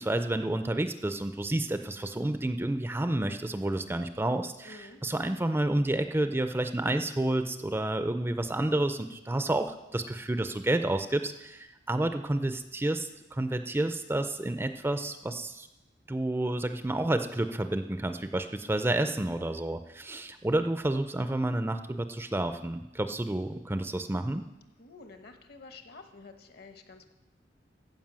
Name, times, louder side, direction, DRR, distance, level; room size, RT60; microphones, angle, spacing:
voice 1, 0.0-15.7 16.1-24.4, right 1 dB, 15° right, 8 dB, 0.4 m, -30 dB
voice 2, 4.6-5.0 24.8-27.1, left 3 dB, 60° left, 7 dB, 1.1 m, -50 dB
15.0 x 5.3 x 7.4 m, 0.98 s
head